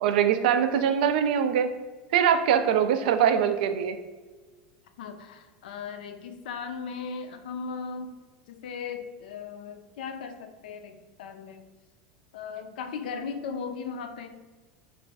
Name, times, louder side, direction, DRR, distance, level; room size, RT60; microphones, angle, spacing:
voice 1, 0.0-1.7 2.1-4.0, right 8 dB, 80° right, 9 dB, 0.3 m, -23 dB
voice 2, 5.0-8.2 8.5-11.7 12.3-14.4, left 5 dB, 90° left, 8 dB, 0.4 m, -37 dB
3.0 x 2.4 x 3.3 m, 1.3 s
supercardioid pair, 140°, 5 cm